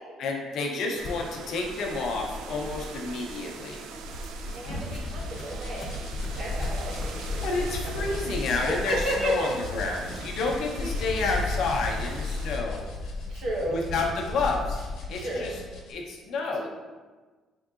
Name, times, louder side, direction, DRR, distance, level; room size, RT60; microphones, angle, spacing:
voice 1, 0.2-3.8 7.4-12.8 13.7-14.8 15.1-15.5 15.9-16.7, left 3 dB, 55° left, 0 dB, 0.6 m, -30 dB
sound 1, 1.0-15.0, left 3 dB, 30° left, 0.8 m, -36 dB
sound 2, 1.0-12.6, right 3 dB, 80° right, 0.3 m, -41 dB
sound 3, 4.2-15.9, left 2 dB, 85° left, 0.9 m, -40 dB
voice 2, 4.5-6.0 6.3-8.2 8.7-9.5 10.3-10.4 10.8-11.0 13.3-13.8 15.1-15.6 16.6-16.8, right 1 dB, 60° right, -4 dB, 1.1 m, -33 dB
4.7 x 3.7 x 2.4 m, 1.3 s
cardioid pair, 170°, 0 cm